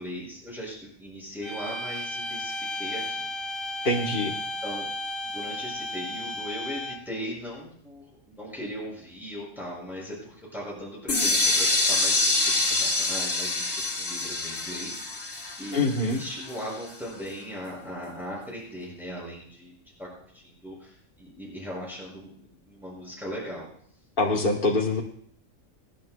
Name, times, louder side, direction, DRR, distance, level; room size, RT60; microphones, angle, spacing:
voice 1, 0.0-3.3 4.4-4.9 5.2-19.7 20.0-20.1 20.3-23.7, equal, ahead, -6 dB, 5.9 m, -39 dB
sound 1, 1.4-7.2, left 1 dB, 25° left, 0.9 m, -34 dB
voice 2, 3.8-4.3 15.7-16.2 24.2-25.0, left 2 dB, 45° left, -1 dB, 1.4 m, -24 dB
sound 2, 11.1-16.9, left 2 dB, 75° left, 2.4 m, -26 dB
26.0 x 11.0 x 2.2 m, 0.62 s
omnidirectional pair, 1.4 m